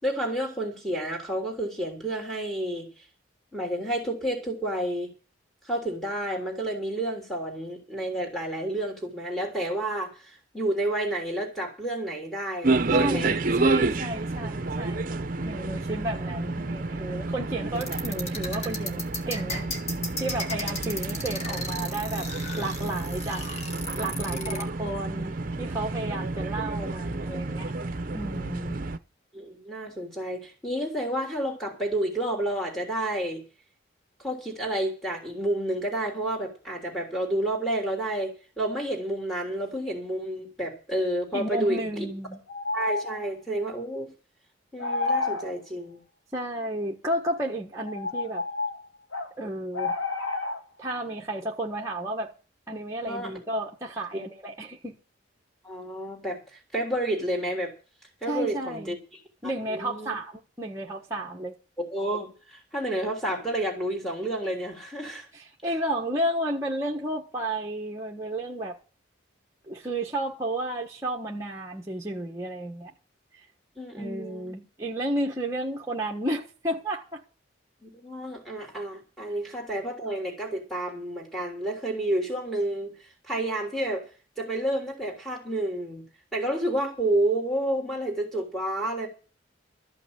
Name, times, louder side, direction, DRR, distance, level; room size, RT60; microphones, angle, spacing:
voice 1, 0.0-2.9 3.5-5.1 5.6-13.3 24.3-24.7 27.8-27.9 28.5-28.7 29.3-33.4 34.2-42.1 42.7-44.1 44.7-46.0 53.1-53.3 55.6-57.7 58.2-60.1 61.8-65.3 73.8-74.5 77.8-82.9 83.2-84.1 84.4-86.0 86.3-89.1, right 1 dB, ahead, 3.4 m, -30 dB
sound 1, 12.6-29.0, right 3 dB, 45° right, 0.7 m, -30 dB
voice 2, 12.9-19.7 20.2-22.3 22.5-23.4 23.9-27.7 28.1-28.8 41.3-42.4 46.3-48.4 49.4-50.0 50.8-52.3 52.7-55.0 58.3-59.0 59.4-61.5 65.3-68.8 69.7-72.9 74.0-77.2, right 1 dB, 15° right, 1.4 m, -32 dB
sound 2, 17.8-24.6, left 2 dB, 35° left, 1.9 m, -35 dB
sound 3, 42.5-43.3 44.8-45.5 47.2-47.4 47.8-49.3 49.7-50.6, left 3 dB, 80° left, 2.3 m, -30 dB
14.0 x 6.0 x 8.9 m
head